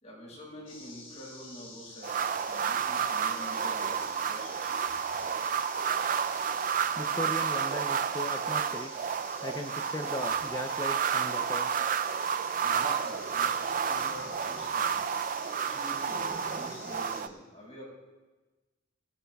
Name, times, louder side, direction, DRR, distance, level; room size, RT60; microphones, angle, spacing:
voice 1, 0.0-4.7 12.6-15.1 15.6-17.8, equal, 35° left, -3 dB, 5.1 m, -46 dB
sound 1, 0.7-17.2, left 3 dB, 85° left, 5.6 m, -49 dB
sound 2, 2.0-17.3, right 7 dB, 40° right, 0.4 m, -31 dB
voice 2, 6.9-8.9 9.4-11.7, left 1 dB, 20° left, 5 dB, 0.5 m, -38 dB
sound 3, 12.5-15.3 15.8-17.1, left 1 dB, 55° left, 3.7 m, -47 dB
23.0 x 16.5 x 2.3 m, 1.2 s
head